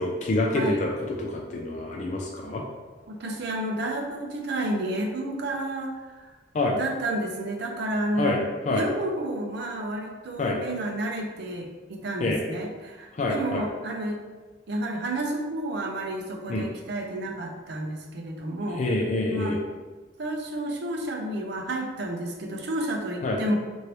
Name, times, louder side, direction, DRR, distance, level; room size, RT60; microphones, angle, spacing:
voice 1, 0.0-2.6 6.5-6.8 8.2-8.4 8.7-8.9 10.4-10.6 12.2-12.4 13.1-13.6 16.5-16.7 18.7-19.6 23.2-23.4, left 2 dB, 40° left, -1 dB, 0.4 m, -26 dB
voice 2, 0.5-0.8 3.1-5.9 6.7-14.2 14.7-18.8 19.3-19.6 20.2-23.6, right 1 dB, 65° right, 2 dB, 0.5 m, -31 dB
3.0 x 2.6 x 3.0 m, 1.3 s
head